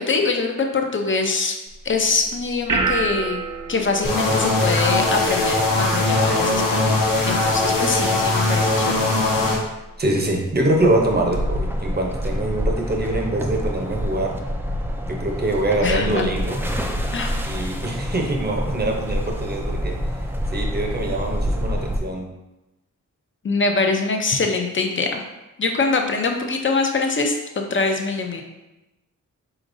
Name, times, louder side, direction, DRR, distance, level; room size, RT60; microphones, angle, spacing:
voice 1, 0.0-1.6 1.8-3.4 3.7-9.1 15.8-16.4 17.1-17.4 23.4-25.2 25.6-28.4, left 4 dB, 35° left, 3 dB, 0.6 m, -23 dB
sound 1, 1.7-15.2, right 4 dB, 70° right, 0.6 m, -34 dB
sound 2, 4.0-9.6, left 2 dB, 80° left, 1.0 m, -20 dB
voice 2, 10.0-14.4 15.1-16.6 17.4-20.0 20.5-22.3, right 1 dB, 30° right, 1 dB, 0.7 m, -24 dB
sound 3, 10.8-22.0, equal, 5° right, 0.3 m, -27 dB
5.0 x 3.9 x 2.6 m, 0.99 s
wide cardioid pair, 130°, 33 cm